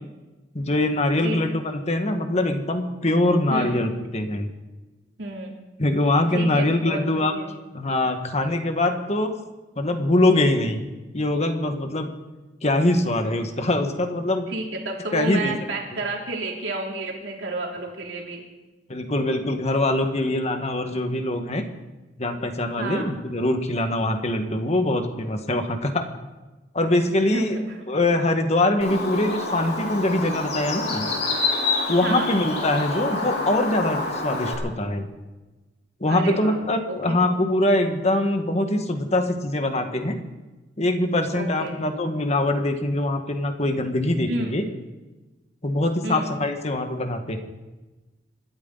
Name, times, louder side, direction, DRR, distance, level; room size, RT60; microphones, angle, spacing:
voice 1, 0.5-4.5 5.8-7.3 7.7-9.3 9.8-10.8 11.1-12.1 12.6-14.5 15.1-15.5 18.9-21.6 22.2-26.1 26.7-31.1 31.9-35.1 36.0-40.2 40.8-44.6 45.6-47.4, left 1 dB, 40° left, 6 dB, 1.7 m, -23 dB
voice 2, 3.5-3.9 5.2-5.5 6.3-7.5 14.5-18.4 22.8-23.1 27.2-27.8 32.0-32.4 36.1-37.2 41.3-41.8 44.3-44.6 46.0-46.3, right 2 dB, 80° right, -1 dB, 3.6 m, -31 dB
Bird, 28.8-34.6, left 3 dB, 65° left, 3.7 m, -27 dB
26.5 x 13.0 x 4.0 m, 1.1 s
head